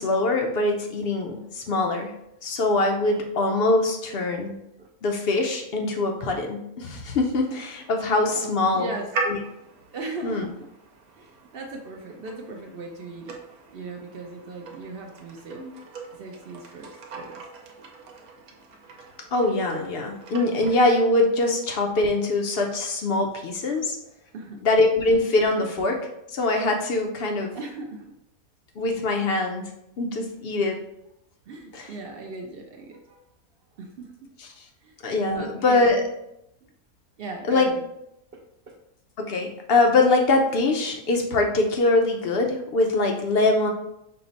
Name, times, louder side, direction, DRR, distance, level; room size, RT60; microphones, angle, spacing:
voice 1, 0.0-2.1 2.4-4.5 5.0-8.9 9.3-9.4 10.2-10.5 19.3-24.0 24.6-26.0 26.3-27.5 28.8-29.6 30.0-30.8 31.7-31.9 35.0-36.0 37.5-37.7 39.2-43.7, left 2 dB, 60° left, 2 dB, 0.6 m, -23 dB
sound 1, 7.3-21.0, right 3 dB, 85° right, 1.2 m, -39 dB
voice 2, 8.3-9.1 9.9-10.7 11.1-13.4 13.7-15.6 16.2-17.5 24.3-24.6 25.5-25.7 27.5-28.0 30.6-30.7 31.5-33.2 33.7-34.3 34.8-35.0 35.3-36.0 36.6-36.7 37.2-37.8 38.3-38.7, right 2 dB, 65° right, 2 dB, 0.6 m, -38 dB
5.7 x 2.1 x 3.9 m, 0.82 s
omnidirectional pair, 1.5 m